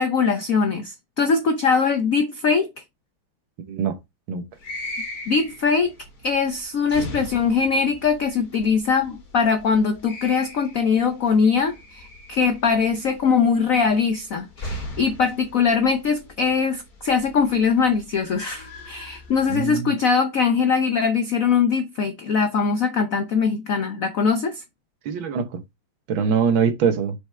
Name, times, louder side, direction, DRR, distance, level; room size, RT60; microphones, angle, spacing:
voice 1, 0.0-2.7 5.3-5.9 6.2-24.6, left 5 dB, 70° left, 0.8 m, -21 dB
voice 2, 3.6-4.0 4.3-4.4 19.5-19.9 25.0-25.5 26.1-27.1, right 6 dB, 65° right, 1.7 m, -22 dB
sound 1, 4.6-19.7, left 1 dB, 45° left, 2.1 m, -40 dB
6.5 x 4.8 x 3.3 m
omnidirectional pair, 2.4 m